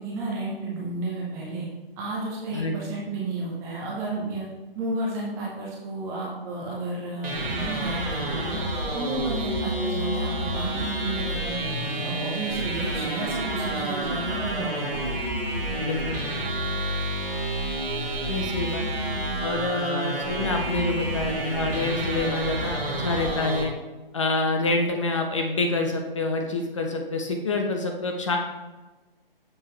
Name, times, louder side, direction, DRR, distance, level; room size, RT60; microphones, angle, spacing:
voice 1, 0.0-1.7 2.0-4.5 4.8-8.6 8.9-15.0, right 2 dB, 10° right, -4 dB, 0.7 m, -32 dB
voice 2, 2.5-3.0 15.8-16.2 18.3-18.9 19.4-23.7 24.1-28.4, left 2 dB, 35° left, 3 dB, 0.6 m, -27 dB
sound 1, 7.2-23.6, right 1 dB, 70° right, 1.8 m, -29 dB
7.0 x 5.3 x 3.2 m, 1.2 s
figure-of-eight pair, 145°, 29 cm